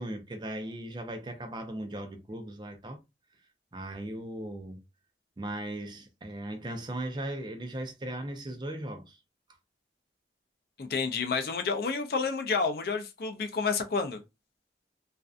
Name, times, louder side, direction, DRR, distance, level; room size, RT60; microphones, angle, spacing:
voice 1, 0.0-3.0 3.7-4.8 5.4-9.2, right 1 dB, 25° right, 0.4 m, -38 dB
voice 2, 10.8-14.2, left 4 dB, 55° left, 0.4 m, -30 dB
2.5 x 2.2 x 2.3 m
head